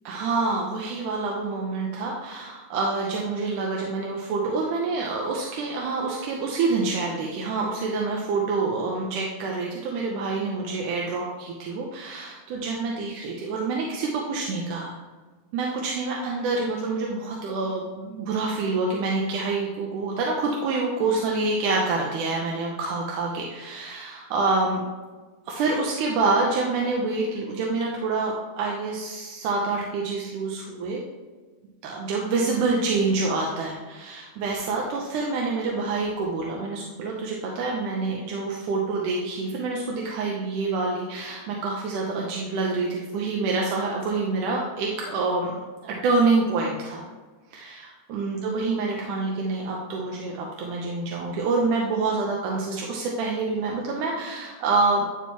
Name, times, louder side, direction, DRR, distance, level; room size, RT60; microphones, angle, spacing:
voice 1, 0.1-14.9 15.5-24.8 25.5-31.0 31.8-45.5 45.8-47.0 47.5-55.1, right 3 dB, 90° right, -1 dB, 2.3 m, -27 dB
11.0 x 4.6 x 2.9 m, 1.3 s
omnidirectional pair, 3.6 m